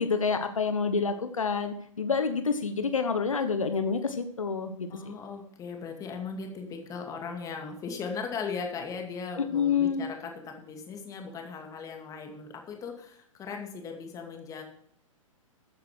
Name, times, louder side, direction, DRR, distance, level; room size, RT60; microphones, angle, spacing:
voice 1, 0.0-4.9 9.5-10.0, left 5 dB, 70° left, 8 dB, 1.3 m, -28 dB
voice 2, 4.9-14.6, left 5 dB, 20° left, 3 dB, 2.5 m, -38 dB
14.0 x 9.4 x 4.6 m, 0.67 s
figure-of-eight pair, 110°, 17 cm